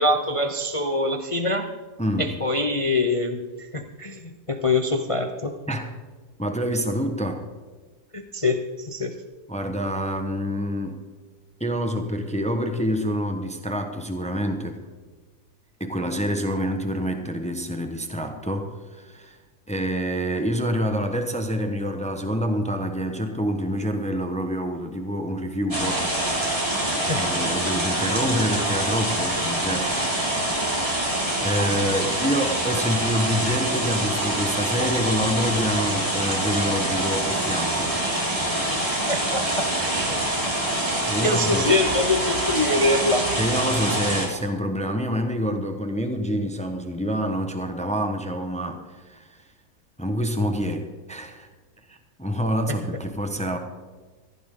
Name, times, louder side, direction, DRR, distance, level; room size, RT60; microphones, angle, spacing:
voice 1, 0.0-1.7 2.2-5.6 8.1-9.1 26.8-27.2 38.9-40.5 40.8-43.3, left 2 dB, 45° left, 6 dB, 0.4 m, -25 dB
voice 2, 2.0-2.4 5.7-5.9 6.4-7.5 9.5-11.0 11.6-14.9 15.8-19.4 19.7-26.1 27.1-30.9 31.4-38.0 41.1-41.8 43.4-49.4 50.0-51.5 51.9-53.6, equal, 5° left, 5 dB, 0.9 m, -27 dB
sound 1, 25.7-44.3, right 1 dB, 20° right, 3.4 m, -25 dB
15.0 x 15.0 x 3.8 m, 1.4 s
omnidirectional pair, 1.9 m